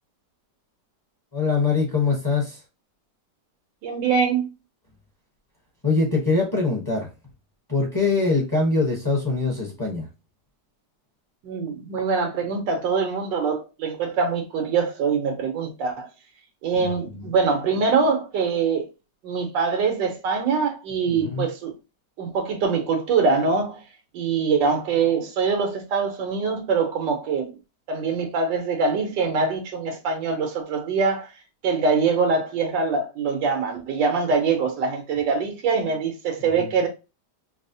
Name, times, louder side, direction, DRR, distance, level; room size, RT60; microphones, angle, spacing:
voice 1, 1.3-2.6 5.8-7.1 7.7-10.1 16.7-17.3 21.1-21.5 36.4-36.7, left 3 dB, 20° left, 0.7 m, -23 dB
voice 2, 3.8-4.5 11.4-16.1 16.6-18.9 19.2-21.7 22.2-23.8 24.1-27.5 27.9-31.3 31.6-36.9, right 5 dB, 90° right, 1.5 m, -23 dB
5.1 x 2.0 x 2.7 m
omnidirectional pair, 1.9 m